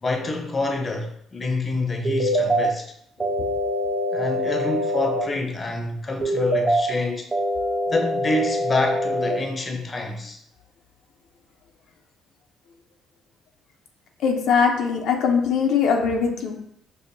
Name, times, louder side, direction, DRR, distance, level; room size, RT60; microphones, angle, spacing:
voice 1, 0.0-2.9 4.1-7.3 7.9-10.4, left 2 dB, 30° left, 0.6 m, -27 dB
sound 1, 2.0-2.6 3.2-5.2 6.2-6.8 7.3-9.3, equal, 25° right, 1.0 m, -24 dB
voice 2, 14.2-16.6, left 6 dB, 75° left, 0.5 m, -21 dB
5.4 x 2.1 x 2.6 m
cardioid pair, 85°, 0 cm